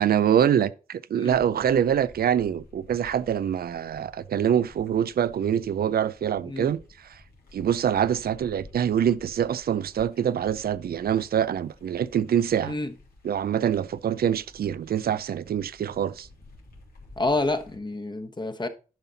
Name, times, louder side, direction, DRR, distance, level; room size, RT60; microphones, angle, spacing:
voice 1, 0.0-7.2 7.5-12.8 13.2-16.3, right 9 dB, 90° right, 0.5 m, -25 dB
sound 1, 1.3-17.8, left 2 dB, 90° left, 2.5 m, -52 dB
voice 2, 17.2-18.7, left 2 dB, 30° left, 1.1 m, -28 dB
11.0 x 5.7 x 4.0 m
cardioid pair, 65°, 15 cm